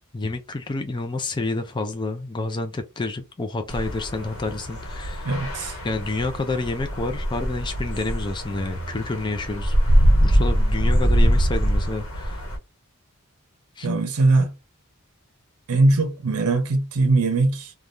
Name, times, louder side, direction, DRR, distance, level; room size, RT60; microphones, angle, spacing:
voice 1, 0.1-5.4 5.8-9.8 10.2-12.5 13.8-13.9, left 2 dB, 20° left, 0.4 m, -29 dB
sound 1, 3.7-12.6, equal, 65° left, 1.1 m, -23 dB
voice 2, 5.2-5.8 13.8-14.5 15.7-17.7, right 2 dB, 85° right, 0.6 m, -20 dB
3.3 x 2.3 x 2.6 m
head